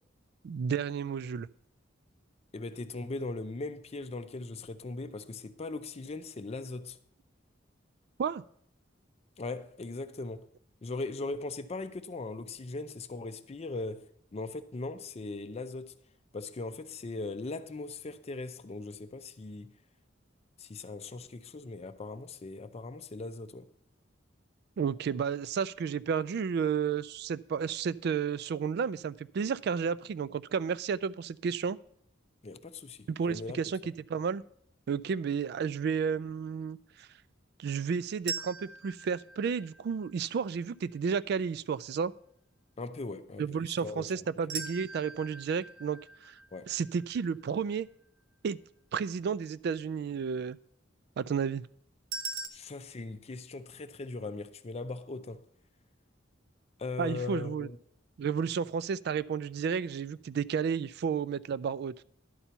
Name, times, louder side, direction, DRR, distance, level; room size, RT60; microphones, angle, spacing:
voice 1, 0.4-1.5 8.2-8.4 24.8-31.8 33.1-33.8 34.1-34.4 34.9-37.1 37.6-42.1 43.4-46.0 46.3-46.4 46.7-47.9 48.4-48.6 48.9-50.6 51.2-51.7 57.0-57.7 58.2-61.9, right 6 dB, 60° right, 0.3 m, -32 dB
voice 2, 2.5-7.0 9.4-10.5 10.8-14.1 14.3-16.0 16.3-19.7 20.6-23.7 32.4-33.6 42.8-44.2 46.5-46.7 52.5-55.4 56.8-57.8, left 3 dB, 35° left, 0.5 m, -39 dB
sound 1, 38.3-40.4 44.5-47.6 52.1-52.5, right 5 dB, 75° right, 0.8 m, -41 dB
11.0 x 4.4 x 6.8 m
head